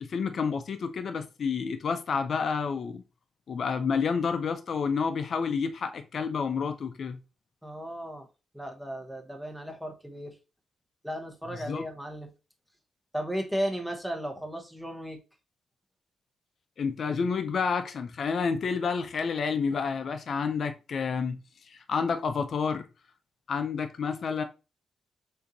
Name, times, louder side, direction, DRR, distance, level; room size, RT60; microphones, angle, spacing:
voice 1, 0.0-3.0 3.5-7.2 11.7-11.8 16.8-21.4 21.7-22.9 23.5-24.4, left 5 dB, 55° left, 0.4 m, -29 dB
voice 2, 7.6-8.3 8.5-10.4 11.0-12.3 13.1-15.2, equal, 5° right, 0.9 m, -35 dB
6.5 x 2.7 x 2.7 m
cardioid pair, 105°, 0 cm